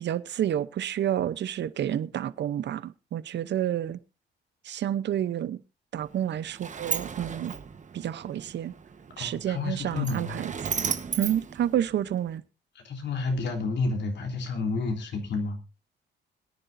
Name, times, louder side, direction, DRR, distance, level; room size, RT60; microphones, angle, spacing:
voice 1, 0.0-4.0 4.6-5.6 5.9-7.5 7.9-8.7 9.2-10.5 11.2-12.4, right 10 dB, 60° right, 0.8 m, -29 dB
Sliding door, 6.0-12.4, right 6 dB, 40° right, 1.2 m, -36 dB
voice 2, 9.2-10.4 12.8-15.6, left 3 dB, 60° left, 3.6 m, -30 dB
22.0 x 10.0 x 2.7 m
cardioid pair, 90°, 20 cm